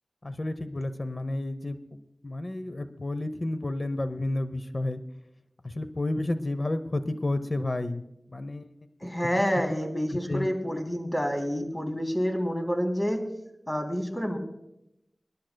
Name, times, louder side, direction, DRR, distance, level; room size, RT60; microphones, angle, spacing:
voice 1, 0.2-1.8 2.2-5.0 5.6-8.0 8.3-8.7 9.0-9.1 10.1-10.5, left 2 dB, 55° left, 10 dB, 0.7 m, -31 dB
voice 2, 9.0-13.2 13.7-14.4, equal, 25° left, 2 dB, 3.0 m, -28 dB
26.0 x 11.5 x 2.2 m, 0.84 s
wide cardioid pair, 50°, 0 cm